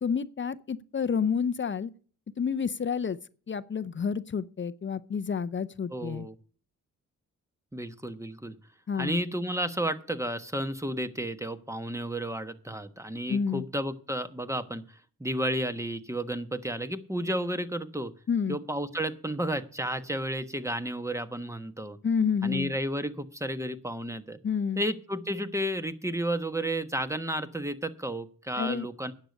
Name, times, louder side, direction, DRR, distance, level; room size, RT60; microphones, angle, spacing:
voice 1, 0.0-1.9 2.4-3.2 3.5-6.3 8.9-9.2 13.3-13.6 18.3-18.6 22.0-22.7 24.4-24.8 28.6-28.9, left 6 dB, 35° left, 0.6 m, -29 dB
voice 2, 5.9-6.3 7.7-8.5 9.0-14.8 15.2-18.1 18.5-22.0 22.4-24.4 24.8-29.1, right 1 dB, 10° right, 1.2 m, -32 dB
10.0 x 6.7 x 8.4 m
cardioid pair, 60°, 32 cm